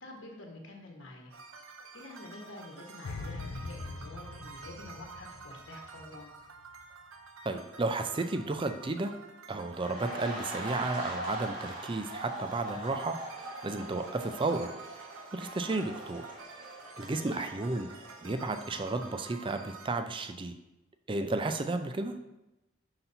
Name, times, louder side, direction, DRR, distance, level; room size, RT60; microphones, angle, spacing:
voice 1, 0.0-1.3 1.9-6.3 16.9-17.5, left 2 dB, 60° left, 1 dB, 1.2 m, -48 dB
sound 1, 1.3-19.9, right 4 dB, 80° right, 0.7 m, -49 dB
sound 2, 3.0-6.2 6.5-6.8, left 3 dB, 85° left, 0.5 m, -42 dB
voice 2, 7.4-9.1 9.5-13.2 13.6-14.7 15.3-16.4 17.0-17.9 18.2-20.5 21.1-22.2, right 2 dB, 25° right, 8 dB, 0.4 m, -33 dB
sound 3, 9.7-18.6 18.9-19.1, right 1 dB, 40° right, 1.3 m, -42 dB
5.8 x 4.1 x 5.5 m, 0.96 s
head